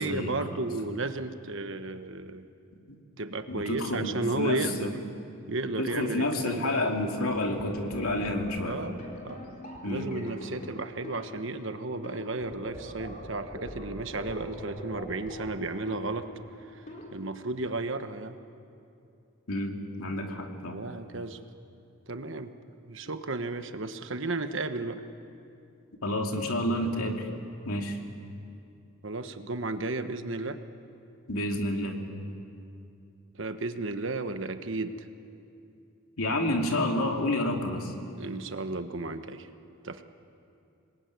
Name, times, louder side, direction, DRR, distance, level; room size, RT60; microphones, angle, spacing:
voice 1, 0.0-2.5 3.2-5.0 5.5-6.9 8.7-9.4 9.8-16.3 16.7-16.8 17.1-18.4 20.7-21.4 22.1-22.5 22.9-25.0 29.0-30.6 33.4-35.1 38.2-39.5 39.8-40.0, right 2 dB, 60° right, 8 dB, 1.3 m, -33 dB
voice 2, 3.5-5.0 5.8-8.8 9.8-10.1 19.5-20.8 26.0-27.3 27.6-28.0 31.3-32.0 36.2-37.9, left 1 dB, 85° left, 2 dB, 2.9 m, -29 dB
sound 1, 6.7-17.1, equal, 35° left, 3.9 m, -43 dB
26.5 x 20.5 x 9.4 m, 2.6 s
head